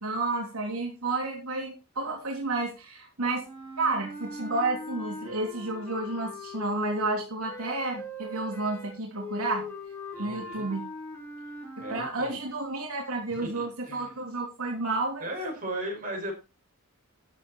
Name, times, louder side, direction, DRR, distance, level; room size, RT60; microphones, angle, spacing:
voice 1, 0.0-3.4 3.8-9.7 10.2-10.8 11.9-15.3, right 2 dB, 75° right, 0 dB, 3.3 m, -31 dB
sound 1, 3.4-12.1, left 2 dB, 10° left, 3.6 m, -40 dB
voice 2, 10.1-10.7 11.8-12.4 13.3-14.1 15.2-16.3, right 1 dB, 40° right, 1 dB, 5.9 m, -36 dB
13.5 x 7.7 x 4.6 m, 0.29 s
head